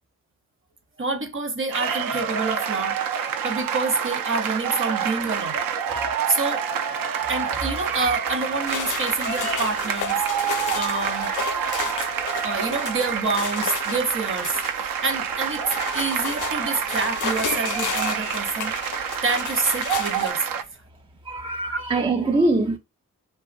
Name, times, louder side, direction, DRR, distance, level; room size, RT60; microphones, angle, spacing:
voice 1, 1.0-5.6 6.3-6.7 7.3-10.3 10.7-11.3 11.8-15.7 15.9-18.8 19.2-20.5 21.6-21.8, right 3 dB, 35° right, 0.8 m, -27 dB
sound 1, 1.7-20.6, right 7 dB, 65° right, 0.5 m, -27 dB
sound 2, 8.7-20.3, left 8 dB, 55° left, 0.5 m, -33 dB
voice 2, 21.2-22.8, right 2 dB, 15° right, 0.3 m, -22 dB
2.5 x 2.4 x 2.5 m
supercardioid pair, 40°, 37 cm